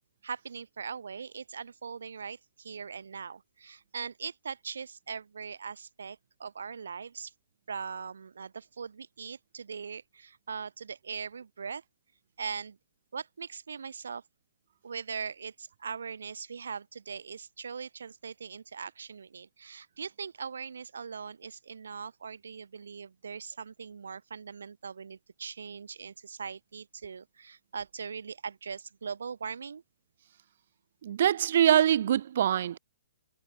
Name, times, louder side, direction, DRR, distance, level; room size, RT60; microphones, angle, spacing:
voice 1, 0.2-7.3 7.7-11.8 12.4-12.8 13.1-14.2 14.8-29.8, right 6 dB, 65° right, 2.5 m, -40 dB
voice 2, 31.0-32.8, right 10 dB, 50° right, 0.4 m, -24 dB
figure-of-eight pair, 125°, 0 cm